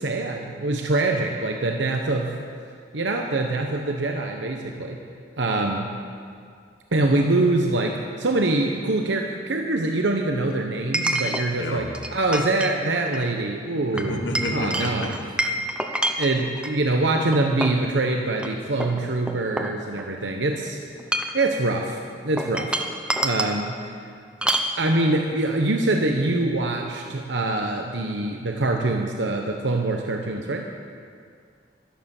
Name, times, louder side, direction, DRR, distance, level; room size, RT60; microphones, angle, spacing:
voice 1, 0.0-2.3 2.9-5.0 5.4-5.9 6.9-15.1 16.2-20.8 21.3-22.8 23.2-23.8 24.8-30.7, right 2 dB, 85° right, 2 dB, 1.0 m, -24 dB
Chink clink, 7.5-7.6 10.9-11.5 11.9-12.7 13.1-13.3 14.0-16.8 17.3-17.9 18.4-18.5 18.8-20.2 20.9-21.5 22.4-23.6 24.4-24.7, right 1 dB, 5° right, 0.8 m, -27 dB
voice 2, 11.6-11.9 13.9-15.1, left 1 dB, 85° left, 2 dB, 1.7 m, -29 dB
12.5 x 11.5 x 7.2 m, 2.2 s
head